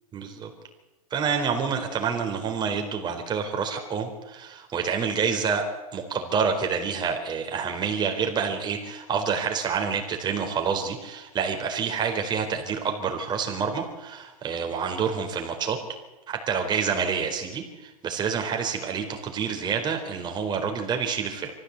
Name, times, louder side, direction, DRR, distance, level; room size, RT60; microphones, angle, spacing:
voice 1, 0.1-0.5 1.1-5.7 5.9-15.8 16.3-21.5, right 6 dB, 20° right, 4 dB, 4.2 m, -28 dB
24.0 x 15.0 x 8.3 m, 1.1 s
hypercardioid pair, 125°, 20 cm